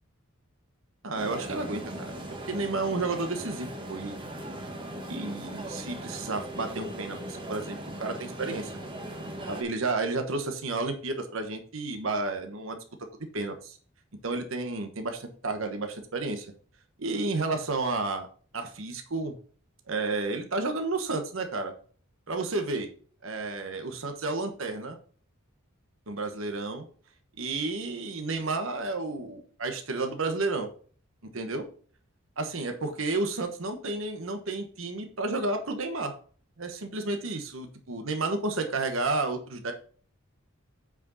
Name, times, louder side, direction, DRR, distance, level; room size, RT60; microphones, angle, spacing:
voice 1, 1.0-2.1 2.5-4.2 5.1-8.7 9.5-12.8 13.3-13.8 14.2-16.5 17.0-18.3 18.5-19.3 19.9-21.7 22.3-22.9 23.2-25.0 26.1-26.8 27.4-30.7 31.3-31.6 32.4-36.1 36.6-39.7, right 3 dB, 70° right, 5 dB, 1.2 m, -31 dB
sound 1, 1.1-9.6, right 1 dB, 25° right, 1.3 m, -39 dB
8.3 x 5.1 x 4.0 m, 0.43 s
head